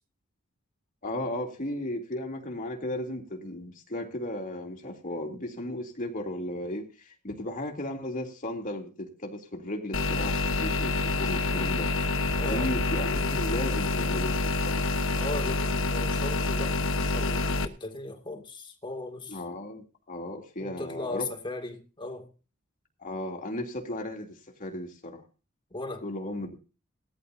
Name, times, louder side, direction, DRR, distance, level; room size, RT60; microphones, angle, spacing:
voice 1, 1.0-11.9 12.5-14.9 19.3-21.3 23.0-25.2 26.0-26.6, left 1 dB, 40° left, 3.2 m, -35 dB
sound 1, 9.9-17.7, left 2 dB, 65° left, 1.2 m, -27 dB
voice 2, 12.4-12.8 15.2-19.4 20.6-22.3 25.7-26.0, left 2 dB, 20° left, 2.5 m, -37 dB
19.0 x 14.0 x 2.8 m
head